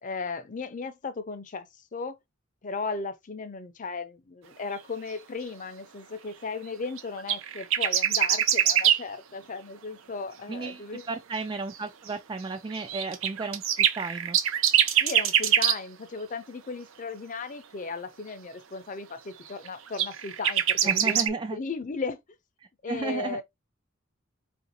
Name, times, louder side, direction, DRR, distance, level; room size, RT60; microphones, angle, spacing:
voice 1, 0.0-1.7 1.9-2.2 2.6-11.1 15.0-21.2 21.5-22.2 22.8-23.4, left 4 dB, 40° left, 0.5 m, -36 dB
sound 1, 7.0-9.0 10.7-10.8 11.4-11.5 11.7-11.8 12.1-12.2 12.7-15.8 19.7-21.3, right 9 dB, 85° right, 0.6 m, -24 dB
voice 2, 10.5-14.4 20.8-21.6 22.9-23.4, right 3 dB, 25° right, 0.3 m, -34 dB
4.6 x 2.6 x 2.7 m
head